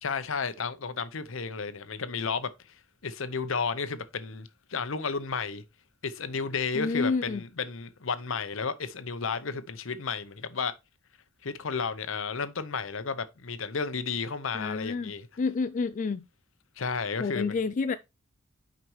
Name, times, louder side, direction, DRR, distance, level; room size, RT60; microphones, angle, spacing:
voice 1, 0.0-2.5 3.0-5.6 6.0-10.7 11.4-15.3 16.8-17.6, left 5 dB, 75° left, 0.8 m, -32 dB
voice 2, 6.8-7.4 14.5-16.2 17.2-18.0, left 4 dB, 40° left, 0.3 m, -29 dB
6.1 x 5.2 x 4.7 m
head